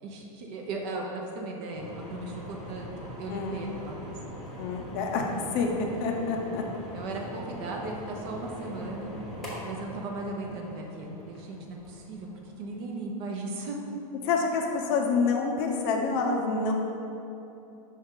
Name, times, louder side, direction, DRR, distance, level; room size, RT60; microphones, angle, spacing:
voice 1, 0.0-2.9 3.2-4.4 6.9-9.1 9.6-12.3 12.6-13.8, right 2 dB, 40° right, 1 dB, 0.8 m, -37 dB
sound 1, 1.7-12.9, equal, ahead, 1.1 m, -42 dB
voice 2, 3.3-3.7 4.6-5.2 5.5-6.6 14.2-16.7, left 4 dB, 40° left, 2 dB, 0.6 m, -27 dB
5.6 x 4.7 x 3.7 m, 2.8 s
supercardioid pair, 150°, 19 cm